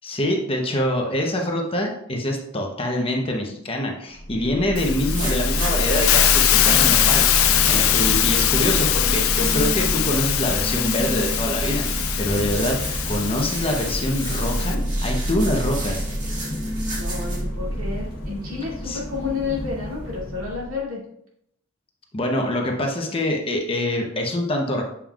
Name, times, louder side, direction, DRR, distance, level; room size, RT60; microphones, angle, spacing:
voice 1, 0.0-12.8 13.1-16.1 18.8-19.0 22.1-24.8, left 1 dB, 25° left, 1 dB, 0.9 m, -25 dB
sound 1, 4.2-20.8, equal, 45° left, 1.7 m, -27 dB
Hiss, 4.8-14.8, left 12 dB, 85° left, 0.5 m, -22 dB
sound 2, 4.9-17.4, right 2 dB, 40° right, 2.0 m, -35 dB
voice 2, 17.0-21.0, left 4 dB, 75° right, -5 dB, 2.5 m, -30 dB
7.2 x 5.4 x 2.5 m, 0.73 s
head